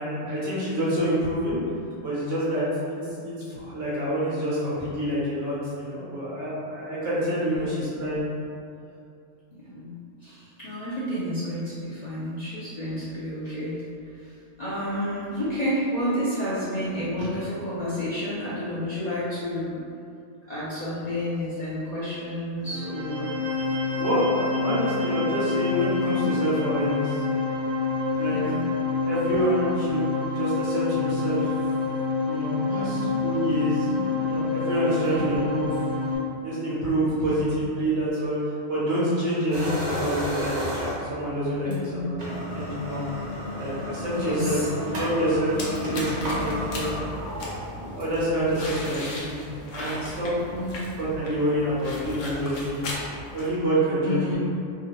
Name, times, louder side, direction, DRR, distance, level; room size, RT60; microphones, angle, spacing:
voice 1, 0.0-1.6 2.0-3.0 3.2-8.2 22.7-22.9 24.0-27.2 28.1-28.4 29.0-31.5 32.2-33.9 34.2-35.8 36.4-43.0 43.6-47.0 47.7-49.4 49.7-50.3 50.9-52.9 53.3-54.4, right 1 dB, 80° right, -9 dB, 1.4 m, -27 dB
voice 2, 10.2-13.8 14.1-19.8 20.5-23.4 28.3-28.6 32.7-33.1 33.8-34.2 35.0-35.4 37.2-37.5 41.6-42.2 44.1-44.7 45.8-46.0 46.4-46.5 50.5-50.9 54.0-54.4, equal, 50° left, -10 dB, 0.5 m, -31 dB
sound 1, 22.6-36.2, left 4 dB, 65° right, 1.0 m, -27 dB
sound 2, 39.5-41.2 41.7-41.8 42.1-48.3, left 1 dB, 40° right, 0.7 m, -32 dB
sound 3, 45.5-53.5, left 1 dB, 80° left, 1.0 m, -37 dB
3.5 x 2.2 x 2.9 m, 2.5 s
omnidirectional pair, 1.3 m